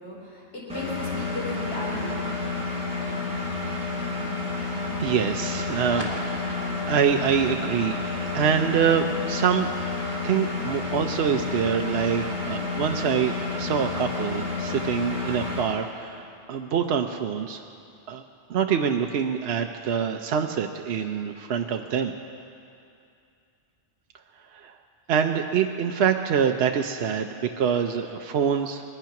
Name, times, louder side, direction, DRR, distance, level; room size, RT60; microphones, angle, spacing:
voice 1, 0.0-2.2, left 1 dB, 75° left, -5 dB, 4.4 m, -35 dB
Engine, 0.7-15.6, left 3 dB, 5° right, 4.6 m, -30 dB
voice 2, 3.6-4.1 5.0-6.1 6.9-9.7 10.2-17.6 18.1-18.2 18.5-22.1 24.5-24.7 25.1-28.8, right 7 dB, 70° right, 4 dB, 0.9 m, -25 dB
sound 1, 5.7-12.5, right 1 dB, 35° right, 2.2 m, -42 dB
20.0 x 12.0 x 5.9 m, 2.6 s
omnidirectional pair, 1.2 m